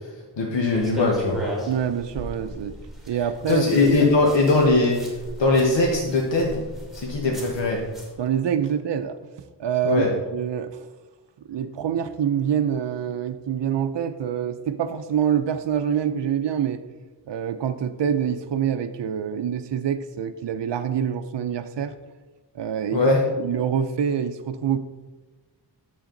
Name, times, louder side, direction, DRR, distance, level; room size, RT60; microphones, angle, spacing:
voice 1, 0.4-1.4 3.5-5.0 5.4-6.6 6.9-7.8 9.8-10.1 22.9-23.2, left 2 dB, 80° left, -1 dB, 1.3 m, -20 dB
sound 1, 0.7-8.1, equal, ahead, 2.7 m, -37 dB
voice 2, 1.7-2.7 3.1-3.9 8.2-9.2 9.6-10.0 10.3-10.8 11.5-16.8 17.3-21.9 22.5-23.0 23.4-24.8, right 8 dB, 75° right, 8 dB, 0.6 m, -26 dB
10.0 x 7.3 x 3.9 m, 1.3 s
wide cardioid pair, 100°, 43 cm